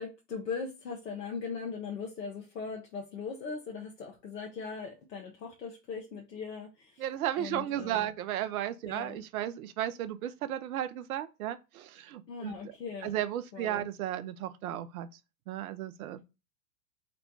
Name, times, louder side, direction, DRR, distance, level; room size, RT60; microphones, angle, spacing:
voice 1, 0.0-7.0 7.4-8.1 8.9-9.2 12.3-13.1 13.5-13.9, left 5 dB, 85° left, 0.9 m, -39 dB
voice 2, 7.0-12.5 13.0-15.1 15.5-16.2, right 12 dB, 60° right, 0.6 m, -34 dB
4.1 x 2.2 x 4.0 m
hypercardioid pair, 95°, 47 cm